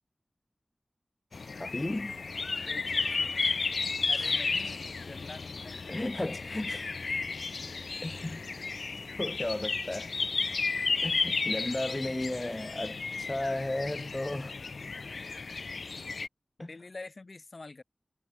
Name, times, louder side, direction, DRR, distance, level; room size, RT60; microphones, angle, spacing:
sound 1, 1.3-16.3, left 4 dB, 90° left, 0.7 m, -33 dB
voice 1, 1.6-2.1 4.1-4.4 5.9-6.9 8.0-8.4 9.2-10.1 11.0-14.6 16.6-16.7, left 1 dB, 30° left, 0.4 m, -34 dB
voice 2, 2.7-3.3 4.1-5.8 6.5-6.6 12.4-12.9 16.6-17.8, left 3 dB, 60° left, 1.7 m, -47 dB
wide cardioid pair, 50°, 0 cm